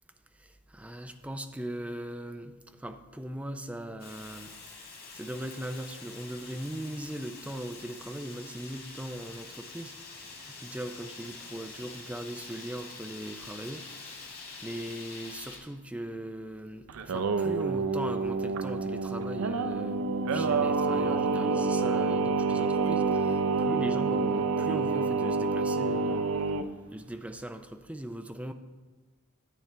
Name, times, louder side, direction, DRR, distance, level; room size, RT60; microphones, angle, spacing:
voice 1, 0.4-4.5 5.1-10.0 10.5-14.2 14.6-26.3 26.9-28.5, right 1 dB, 5° right, 8 dB, 0.4 m, -39 dB
Fire, 4.0-15.6, left 4 dB, 45° left, 1.8 m, -46 dB
Singing, 16.9-26.6, right 4 dB, 80° right, 0.5 m, -28 dB
9.4 x 8.7 x 3.3 m, 1.2 s
head